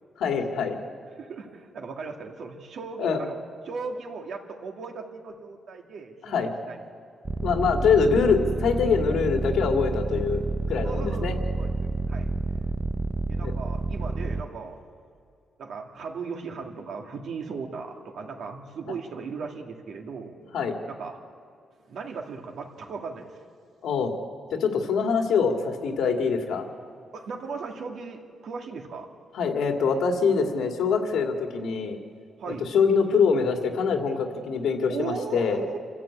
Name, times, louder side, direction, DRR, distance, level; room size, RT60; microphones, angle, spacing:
voice 1, 0.2-0.8 3.0-3.2 6.2-6.5 7.4-11.4 13.4-13.5 20.5-20.8 23.8-24.1 24.5-26.7 29.3-32.0 32.6-35.6, left 5 dB, 75° left, 3 dB, 2.3 m, -24 dB
voice 2, 1.2-3.4 3.7-6.4 6.7-6.8 10.8-12.3 13.3-14.8 15.6-20.4 20.9-21.2 21.9-23.3 27.1-29.1 32.4-32.7 34.9-35.8, right 5 dB, 55° right, 2 dB, 2.2 m, -37 dB
sound 1, 7.2-14.4, right 3 dB, 15° right, 0.5 m, -29 dB
28.0 x 13.5 x 8.7 m, 2.3 s
wide cardioid pair, 180°, 0 cm